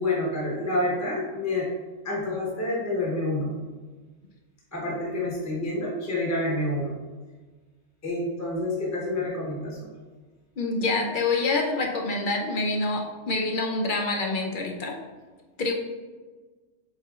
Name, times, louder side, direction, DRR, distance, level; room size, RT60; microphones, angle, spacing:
voice 1, 0.0-1.7 2.0-3.5 4.7-6.9 8.0-9.9, left 2 dB, 15° left, -5 dB, 0.8 m, -28 dB
voice 2, 10.6-15.0 15.6-15.7, left 3 dB, 55° left, 1 dB, 0.6 m, -26 dB
7.7 x 2.8 x 2.4 m, 1.4 s
omnidirectional pair, 1.3 m